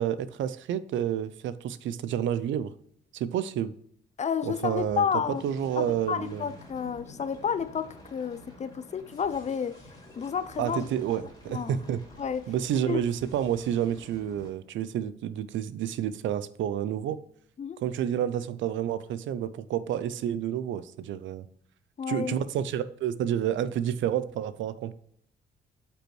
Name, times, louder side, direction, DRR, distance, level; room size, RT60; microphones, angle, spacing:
voice 1, 0.0-2.7 3.1-3.7 4.4-5.0 5.4-6.5 10.6-12.0 12.5-17.2 17.8-21.5 22.1-24.9, right 10 dB, 75° right, 0.5 m, -29 dB
voice 2, 4.2-9.8 10.2-10.9 11.5-11.8 12.2-12.5 12.9-13.0 17.6-17.8 22.0-22.4, left 7 dB, 35° left, 0.5 m, -31 dB
sound 1, 4.6-14.5, left 1 dB, 20° left, 2.8 m, -50 dB
8.6 x 5.3 x 3.2 m
cardioid pair, 90°, 20 cm